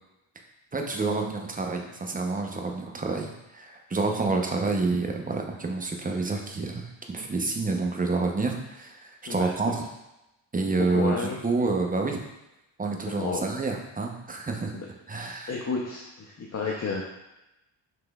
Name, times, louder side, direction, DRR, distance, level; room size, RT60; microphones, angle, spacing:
voice 1, 0.7-9.8 10.5-11.2 11.4-12.2 12.8-14.7 15.1-15.5, right 3 dB, 15° right, 2 dB, 0.7 m, -28 dB
voice 2, 10.7-11.4 13.1-13.5 14.7-14.9 15.5-17.0, left 4 dB, 35° left, -2 dB, 0.7 m, -31 dB
5.9 x 3.1 x 2.3 m, 0.93 s
cardioid pair, 70°, 48 cm